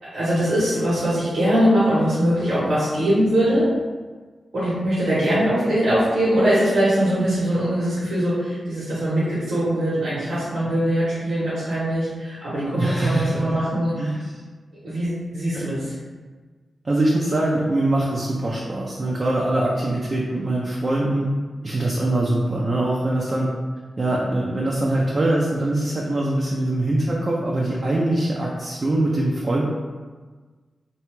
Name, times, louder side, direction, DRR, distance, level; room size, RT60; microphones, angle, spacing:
voice 1, 0.0-3.7 4.5-13.9 14.8-15.9, equal, 80° right, -10 dB, 0.8 m, -21 dB
voice 2, 12.8-13.6 14.0-14.2 15.5-15.7 16.8-21.3 21.6-23.5 24.0-29.7, right 1 dB, 50° right, -3 dB, 0.4 m, -23 dB
2.6 x 2.2 x 3.0 m, 1.4 s
cardioid pair, 45°, 0 cm